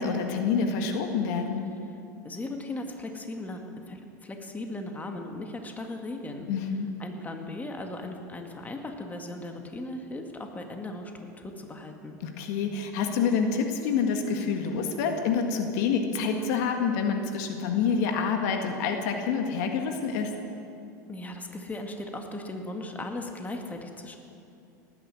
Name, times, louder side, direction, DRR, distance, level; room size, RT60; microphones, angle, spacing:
voice 1, 0.0-1.6 6.5-6.9 12.2-20.4, left 5 dB, 65° left, 4 dB, 1.9 m, -27 dB
voice 2, 2.2-6.5 7.0-11.1 11.4-12.2 21.1-24.2, left 2 dB, 15° left, 3 dB, 2.0 m, -37 dB
19.0 x 10.0 x 7.7 m, 2.6 s
hypercardioid pair, 90°, 10 cm